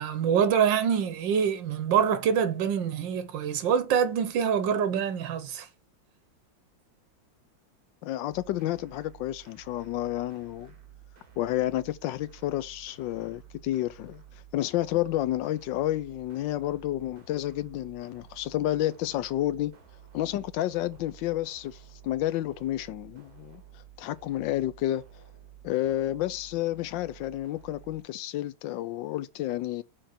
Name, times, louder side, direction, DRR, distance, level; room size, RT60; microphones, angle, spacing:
voice 1, 0.0-5.7, right 7 dB, 80° right, 1.7 m, -25 dB
voice 2, 8.0-10.7 11.4-14.2 14.5-19.7 20.1-23.6 24.0-25.0 25.6-29.8, left 14 dB, 85° left, 1.3 m, -30 dB
sound 1, 8.3-28.0, right 10 dB, 55° right, 2.5 m, -52 dB
6.5 x 4.3 x 5.7 m
omnidirectional pair, 2.0 m